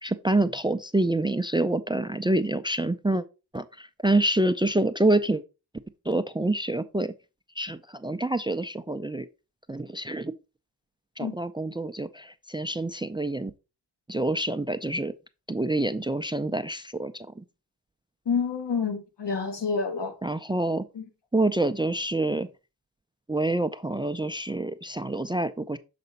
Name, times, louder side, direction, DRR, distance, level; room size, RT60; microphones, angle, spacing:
voice 1, 0.0-3.2 3.5-5.4 6.1-7.1 7.6-9.3 9.7-10.3 11.2-13.5 14.1-15.1 15.5-17.3 20.2-20.8 21.3-22.5 23.3-25.8, right 2 dB, 15° right, 0.3 m, -27 dB
voice 2, 18.2-20.1 20.9-21.1, left 5 dB, 85° left, 1.4 m, -28 dB
6.8 x 4.1 x 3.9 m
wide cardioid pair, 75°, 41 cm